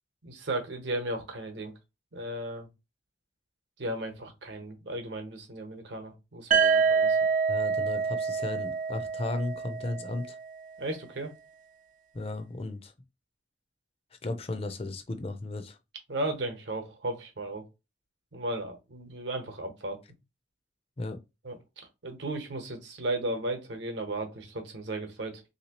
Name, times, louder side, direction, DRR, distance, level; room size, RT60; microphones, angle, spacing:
voice 1, 0.2-1.7 2.1-2.7 3.8-7.2 10.8-11.3 16.1-17.6 18.3-20.0 21.4-21.6 22.0-25.4, right 1 dB, 65° right, 1.0 m, -35 dB
sound 1, 6.5-10.4, right 5 dB, 40° right, 0.4 m, -26 dB
voice 2, 7.5-10.4 12.1-12.9 14.2-15.8 21.0-21.2, left 2 dB, 30° left, 0.5 m, -35 dB
3.2 x 2.9 x 2.9 m
head